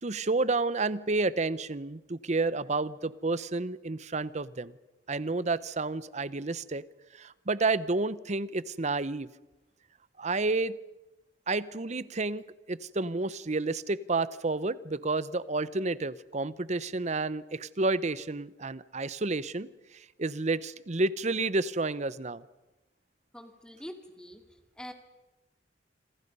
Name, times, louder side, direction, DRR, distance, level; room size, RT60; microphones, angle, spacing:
voice 1, 0.0-4.7 5.1-6.8 7.1-9.3 10.2-10.8 11.5-22.4, right 3 dB, 40° right, 17 dB, 0.8 m, -30 dB
voice 2, 23.3-24.4 24.8-24.9, equal, 5° left, 5 dB, 2.4 m, -44 dB
27.0 x 26.5 x 5.5 m, 1.0 s
head